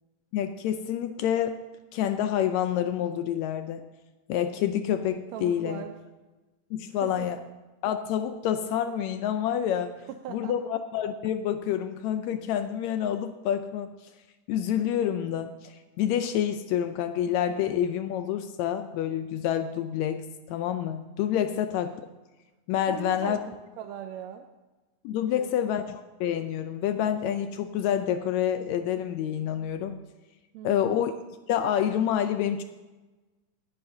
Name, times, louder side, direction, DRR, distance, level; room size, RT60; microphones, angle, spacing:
voice 1, 0.3-1.6 1.9-3.8 4.3-5.8 6.7-7.4 7.8-10.0 10.3-13.9 14.5-22.0 22.7-23.4 25.0-30.0 30.6-31.1 31.5-32.6, left 10 dB, 85° left, 9 dB, 1.6 m, -28 dB
voice 2, 5.3-5.9 7.0-7.3 10.1-10.6 22.9-24.5 25.2-25.5 30.5-31.0, right 9 dB, 85° right, 6 dB, 1.6 m, -39 dB
20.0 x 10.5 x 2.7 m, 1.2 s
omnidirectional pair, 3.8 m